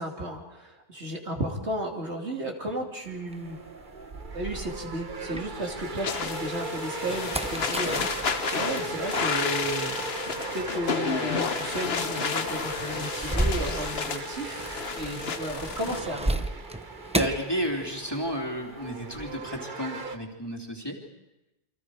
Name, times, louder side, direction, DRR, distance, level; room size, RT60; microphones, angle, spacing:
voice 1, 0.0-3.6 4.3-8.2 8.5-10.0 10.5-14.7 14.9-16.5, right 1 dB, 65° right, 1 dB, 3.1 m, -34 dB
sound 1, 3.1-20.2, right 3 dB, 45° right, 1.3 m, -37 dB
sound 2, 3.3-6.1 6.5-18.3 18.6-19.4, right 1 dB, 5° right, 0.7 m, -35 dB
sound 3, 6.0-16.0, left 5 dB, 60° left, 1.3 m, -31 dB
voice 2, 17.1-21.0, equal, 20° left, 0 dB, 3.1 m, -32 dB
28.5 x 25.0 x 4.9 m, 0.96 s
omnidirectional pair, 1.2 m